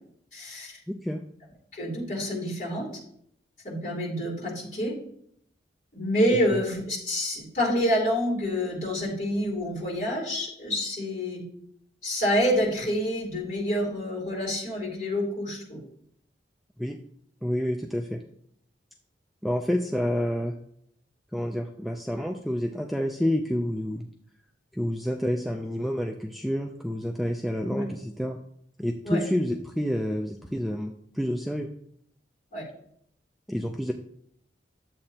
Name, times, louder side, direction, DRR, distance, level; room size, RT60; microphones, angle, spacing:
voice 1, 0.3-0.8 1.7-2.8 3.6-4.9 5.9-11.4 12.0-15.8 27.7-27.8 29.0-29.2 32.5-32.6, equal, 45° left, -5 dB, 3.3 m, -27 dB
voice 2, 17.4-18.2 19.4-20.5 21.3-24.1 24.7-28.4 28.8-31.7 33.5-33.9, equal, ahead, 3 dB, 0.3 m, -29 dB
10.5 x 7.6 x 2.8 m, 0.69 s
head